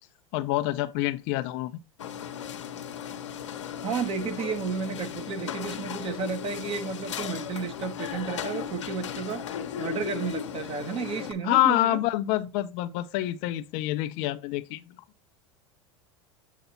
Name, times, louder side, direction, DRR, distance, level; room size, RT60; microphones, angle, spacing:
voice 1, 0.3-1.7 11.4-14.8, left 15 dB, 55° left, 0.7 m, -26 dB
sound 1, 2.0-11.3, left 9 dB, 85° left, 1.1 m, -36 dB
voice 2, 3.8-9.4 9.8-12.0, right 5 dB, 40° right, 1.4 m, -32 dB
8.2 x 2.8 x 5.6 m
hypercardioid pair, 95°, 15 cm